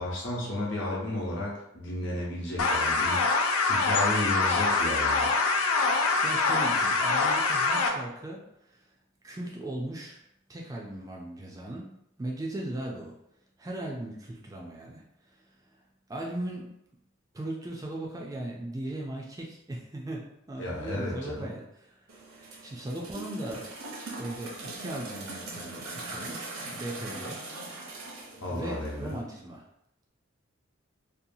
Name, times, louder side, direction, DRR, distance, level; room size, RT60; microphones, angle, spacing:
voice 1, 0.0-5.3 20.6-21.5 28.4-29.1, left 1 dB, 60° left, -4 dB, 0.9 m, -33 dB
sound 1, 2.6-7.9, left 3 dB, 85° left, 0.4 m, -24 dB
voice 2, 6.2-8.8 9.2-10.2 10.5-11.9 12.2-13.1 13.6-15.8 16.1-16.7 17.3-22.1 22.3-23.7 24.1-27.4 28.0-28.1 28.5-29.6, right 1 dB, 15° right, -2 dB, 0.3 m, -38 dB
sound 2, 22.1-29.2, right 2 dB, 80° right, 0.8 m, -41 dB
2.7 x 2.2 x 2.6 m, 0.80 s
head